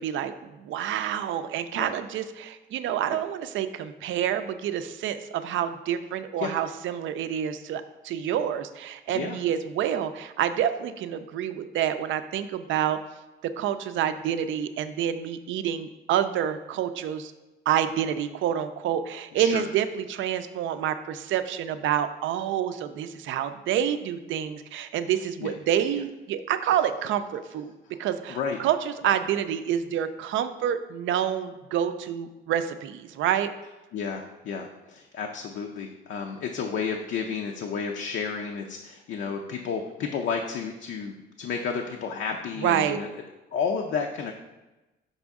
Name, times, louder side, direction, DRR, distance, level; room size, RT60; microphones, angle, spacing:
voice 1, 0.0-13.0 13.4-17.3 17.7-27.7 28.0-33.5 42.6-43.0, right 9 dB, 75° right, 10 dB, 0.4 m, -28 dB
voice 2, 9.1-9.4 19.3-19.6 25.4-25.5 27.9-28.0 28.3-28.6 29.0-29.1 33.9-43.1 43.5-44.3, left 6 dB, 70° left, 2 dB, 0.5 m, -31 dB
5.5 x 5.1 x 3.5 m, 1.1 s
cardioid pair, 90°, 20 cm